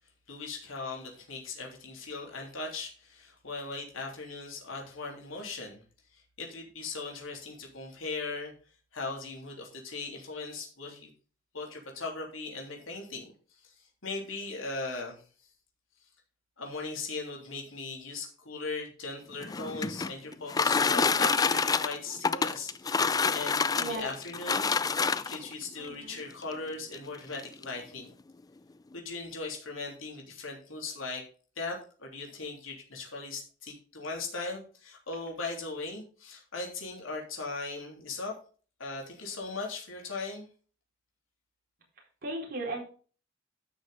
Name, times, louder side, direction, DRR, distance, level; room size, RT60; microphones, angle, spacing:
voice 1, 0.3-5.8 6.1-8.5 8.9-11.1 11.5-15.2 16.6-24.7 25.2-28.1 28.9-31.2 31.5-38.3 38.8-40.5, left 3 dB, 85° left, -1 dB, 3.3 m, -39 dB
sound 1, 19.3-25.5 26.4-26.5 26.9-27.0 27.3-27.7, left 5 dB, 20° left, 0.3 m, -27 dB
voice 2, 23.8-24.1 25.8-26.2 35.6-35.7 42.0-42.8, right 2 dB, 50° right, -2 dB, 4.5 m, -37 dB
13.0 x 6.6 x 3.7 m, 0.39 s
head